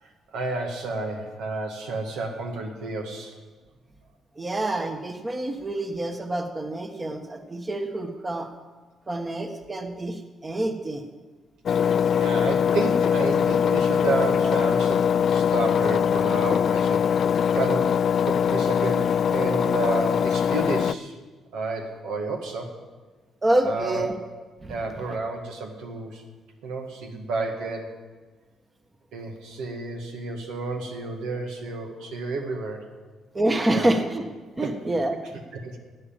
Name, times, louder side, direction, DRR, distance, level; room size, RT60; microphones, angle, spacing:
voice 1, 0.0-3.3 11.8-17.1 17.5-21.1 21.5-22.7 23.6-24.1 24.7-26.2 26.6-27.9 29.1-32.9 33.7-33.9 34.6-34.7 35.5-35.8, right 3 dB, 85° right, 3 dB, 2.0 m, -31 dB
voice 2, 4.4-8.5 9.1-11.0 23.4-24.1 24.6-24.7 33.3-34.2 34.6-35.2, right 1 dB, 25° right, 5 dB, 1.4 m, -27 dB
Engine, 11.7-20.9, left 8 dB, 55° left, 0.3 m, -22 dB
12.5 x 8.6 x 8.8 m, 1.4 s
cardioid pair, 90°, 0 cm